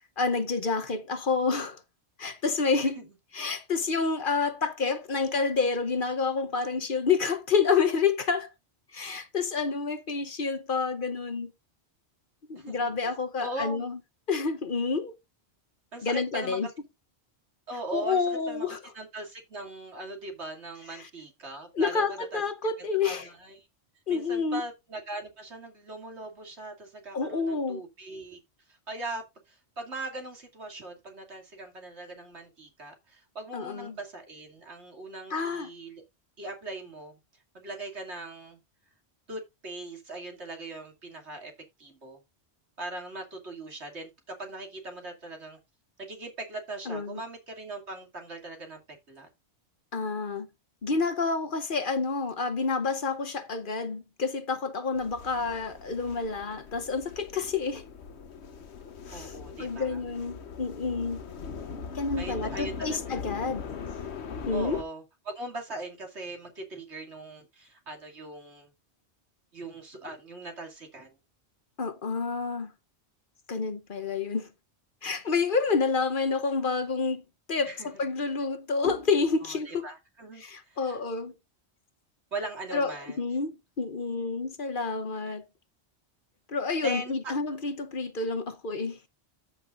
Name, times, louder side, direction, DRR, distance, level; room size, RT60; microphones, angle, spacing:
voice 1, 0.2-1.8 2.2-3.0 3.3-8.5 8.9-11.5 12.5-14.0 14.3-15.2 16.0-16.7 17.9-18.8 21.7-23.3 24.1-24.6 27.1-27.8 33.5-34.0 35.3-35.7 46.9-47.2 49.9-50.5 50.8-57.8 59.1-59.3 59.6-61.2 61.9-63.6 64.5-64.8 71.8-72.7 73.5-74.5 75.0-77.2 77.5-79.9 80.4-81.3 82.7-85.4 86.5-89.0, left 4 dB, 50° left, 1.1 m, -29 dB
voice 2, 12.5-12.9 13.4-13.9 15.9-16.7 17.7-18.7 18.9-22.4 23.0-23.7 24.1-28.4 28.7-36.0 36.4-37.2 37.5-38.6 39.3-41.5 41.8-42.2 42.8-45.6 46.0-49.3 59.1-60.0 62.2-63.2 64.5-68.7 69.5-71.1 77.7-77.9 79.4-81.0 82.3-83.2 86.8-87.3, right 2 dB, 80° right, 2.9 m, -40 dB
sound 1, 54.9-64.8, left 6 dB, 75° left, 1.3 m, -40 dB
14.0 x 5.9 x 2.5 m
omnidirectional pair, 1.1 m